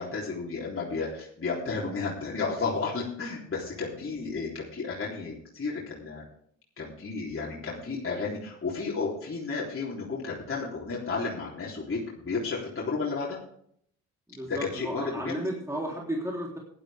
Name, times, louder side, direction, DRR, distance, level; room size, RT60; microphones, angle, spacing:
voice 1, 0.0-6.2 6.8-13.4 14.5-15.3, left 4 dB, 30° left, -5 dB, 3.6 m, -32 dB
voice 2, 14.3-16.6, right 1 dB, 5° right, -2 dB, 3.7 m, -33 dB
15.5 x 11.0 x 3.6 m, 0.68 s
hypercardioid pair, 45°, 42 cm